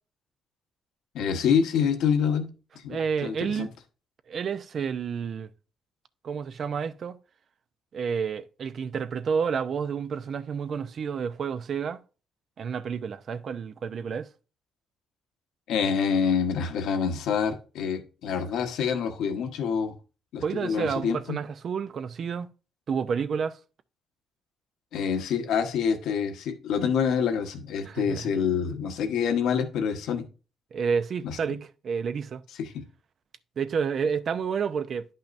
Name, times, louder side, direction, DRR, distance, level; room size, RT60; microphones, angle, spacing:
voice 1, 1.1-2.5 2.7-3.7 15.7-19.9 20.3-21.4 24.9-30.2 31.2-31.4 32.6-32.8, left 7 dB, 85° left, 1.2 m, -26 dB
voice 2, 2.9-3.7 4.3-5.5 6.2-7.2 7.9-12.0 12.6-14.3 20.4-22.5 22.9-23.6 27.9-28.3 30.7-32.4 33.6-35.1, right 6 dB, 55° right, 0.6 m, -30 dB
10.5 x 5.7 x 2.6 m
cardioid pair, 90°, 0 cm